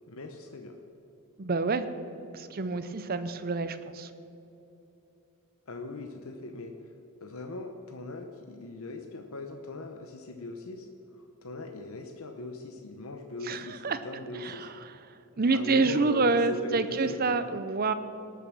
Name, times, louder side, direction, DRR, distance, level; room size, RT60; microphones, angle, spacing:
voice 1, 0.1-0.8 5.7-6.7 7.2-14.7 15.5-17.4, left 3 dB, 70° left, 4 dB, 0.8 m, -40 dB
voice 2, 1.4-1.9 2.3-4.1 13.4-14.0 14.3-14.7 15.4-17.9, right 3 dB, 40° right, 11 dB, 0.6 m, -27 dB
18.5 x 6.9 x 6.1 m, 2.8 s
head